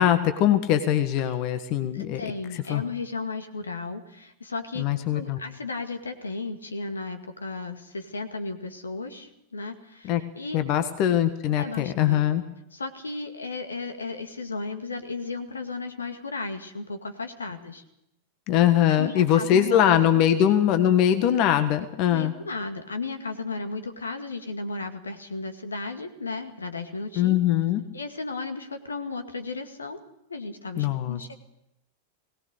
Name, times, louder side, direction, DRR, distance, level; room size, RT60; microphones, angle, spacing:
voice 1, 0.0-2.2 2.5-2.8 4.8-5.4 10.1-10.2 10.5-12.4 18.5-22.3 27.2-27.8 30.8-31.3, left 10 dB, 40° left, 10 dB, 1.5 m, -22 dB
voice 2, 1.9-10.6 11.6-12.2 12.7-17.8 18.9-20.3 22.1-27.4 27.9-30.0 30.3-31.3, left 3 dB, 75° left, 8 dB, 2.1 m, -35 dB
21.5 x 18.5 x 6.7 m, 0.82 s
figure-of-eight pair, 90°, 0 cm